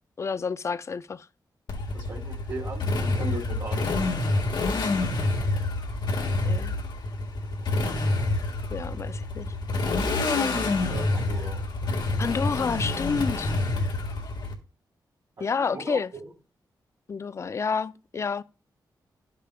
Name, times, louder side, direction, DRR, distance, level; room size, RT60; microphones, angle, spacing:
voice 1, 0.2-1.3 6.4-6.7 8.7-9.5 12.2-13.5 15.4-16.1 17.1-18.4, left 5 dB, 40° left, 0.4 m, -29 dB
Motorcycle, 1.7-14.5, left 2 dB, 85° left, 1.7 m, -27 dB
voice 2, 1.9-4.0 10.2-11.6 15.4-16.3, right 2 dB, 60° right, 1.6 m, -38 dB
13.0 x 6.7 x 2.3 m
wide cardioid pair, 135°, 8 cm